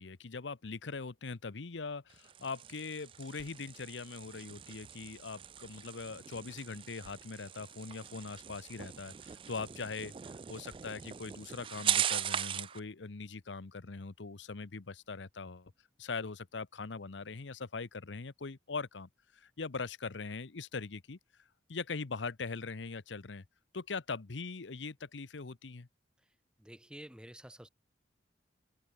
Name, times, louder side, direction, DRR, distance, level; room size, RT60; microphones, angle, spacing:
voice 1, 0.0-10.1 10.5-15.7 16.0-21.2 21.7-23.4 23.7-25.9, left 4 dB, 85° left, 0.9 m, -41 dB
sound 1, 2.1-12.8, right 10 dB, 30° right, 0.3 m, -39 dB
voice 2, 26.2-27.7, right 1 dB, 5° right, 1.0 m, -51 dB
head